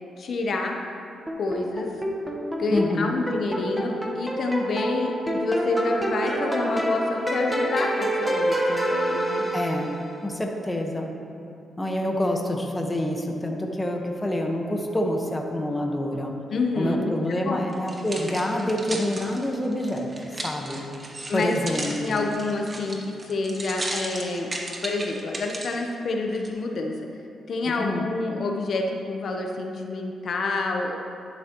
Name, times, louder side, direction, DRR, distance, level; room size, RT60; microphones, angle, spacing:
voice 1, 0.2-0.8 1.4-1.9 2.6-9.5 16.5-17.6 21.3-21.6 22.0-24.5 24.8-26.9 27.5-31.0, left 3 dB, 60° left, 2 dB, 0.9 m, -28 dB
sound 1, 1.3-10.2, equal, 5° right, 1.3 m, -27 dB
voice 2, 2.7-3.1 9.5-9.9 10.2-11.1 11.8-16.3 16.8-20.1 20.4-20.8 21.3-22.3 27.6-28.0, left 1 dB, 15° left, 1 dB, 1.3 m, -27 dB
sound 2, 17.7-25.8 26.3-26.5, right 2 dB, 30° right, 1.5 m, -35 dB
11.0 x 11.0 x 3.1 m, 2.8 s
cardioid pair, 80°, 0 cm